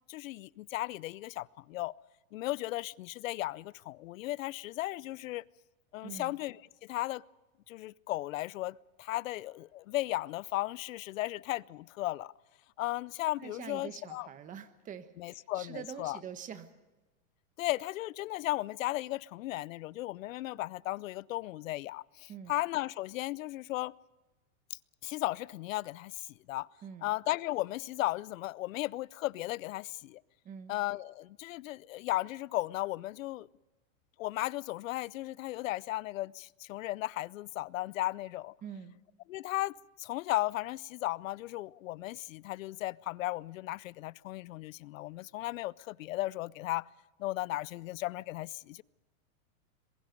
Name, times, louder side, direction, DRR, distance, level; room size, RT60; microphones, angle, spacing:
voice 1, 0.1-1.9 2.3-5.4 5.9-6.6 6.9-7.2 7.7-12.3 12.8-14.3 15.2-16.2 17.6-23.9 24.7-26.7 27.0-30.2 30.7-33.5 34.2-38.5 39.3-46.9 47.2-48.8, left 17 dB, 65° left, 0.6 m, -35 dB
voice 2, 6.0-6.4 13.4-16.7 22.3-22.6 26.8-27.1 30.4-30.7 38.6-38.9, right 8 dB, 20° right, 1.2 m, -45 dB
26.5 x 22.0 x 5.2 m
supercardioid pair, 155°, 42 cm